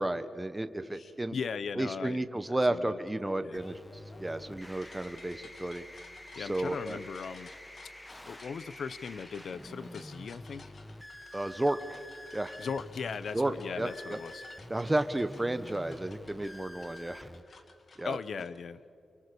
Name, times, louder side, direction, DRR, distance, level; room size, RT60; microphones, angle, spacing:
voice 1, 0.0-1.4 1.7-3.8 4.2-5.8 6.4-7.0 11.3-12.0 12.3-12.6 13.3-14.2 14.7-17.3 18.0-18.2, right 1 dB, 15° right, 10 dB, 1.1 m, -32 dB
sound 1, 0.9-1.1 3.1-18.6, left 3 dB, 55° left, 2.1 m, -56 dB
voice 2, 1.3-2.2 2.7-3.0 3.4-3.6 6.3-7.5 8.2-10.7 12.6-14.4 18.0-18.8, left 6 dB, 70° left, 15 dB, 0.8 m, -38 dB
sound 2, 3.5-17.4, left 1 dB, 10° left, 1.1 m, -48 dB
29.0 x 24.0 x 6.9 m, 2.4 s
wide cardioid pair, 110°, 0 cm